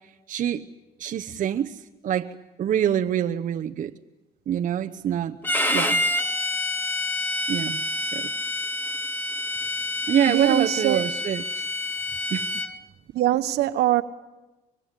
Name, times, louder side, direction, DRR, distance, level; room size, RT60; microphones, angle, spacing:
voice 1, 0.3-0.7 1.0-2.3 2.6-4.0 4.5-5.4 5.7-6.0 7.5-7.8 8.1-8.3 10.1-11.7 12.3-12.5, right 9 dB, 50° right, 0.9 m, -26 dB
Bowed string instrument, 5.4-12.7, left 1 dB, 10° left, 2.0 m, -27 dB
voice 2, 10.2-11.0 13.1-14.0, right 14 dB, 75° right, 1.4 m, -22 dB
25.0 x 22.5 x 8.3 m
cardioid pair, 110°, 17 cm